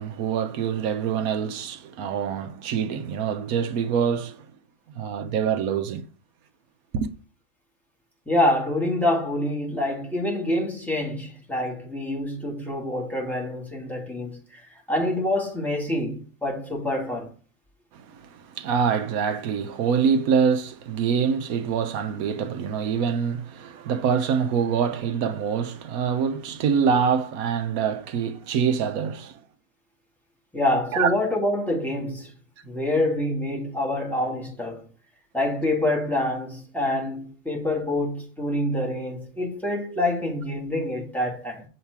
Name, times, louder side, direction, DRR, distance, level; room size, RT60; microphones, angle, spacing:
voice 1, 0.0-4.4 4.9-6.1 6.9-7.1 18.3-29.3 30.9-31.1, right 7 dB, 70° right, 1.0 m, -25 dB
voice 2, 8.2-14.6 14.9-17.3 30.5-32.3 32.6-34.8 35.3-41.6, left 1 dB, ahead, 1.6 m, -26 dB
7.1 x 3.2 x 4.6 m
omnidirectional pair, 1.7 m